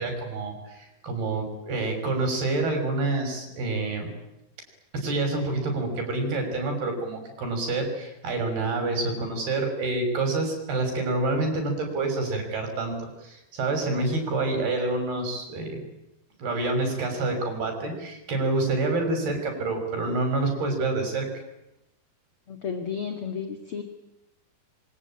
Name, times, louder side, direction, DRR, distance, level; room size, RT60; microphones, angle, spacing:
voice 1, 0.0-4.1 4.9-15.8 16.4-21.3, right 2 dB, 80° right, 4 dB, 8.1 m, -27 dB
voice 2, 22.5-23.8, left 6 dB, 40° left, 5 dB, 2.5 m, -32 dB
27.0 x 24.5 x 8.9 m, 0.90 s
omnidirectional pair, 4.4 m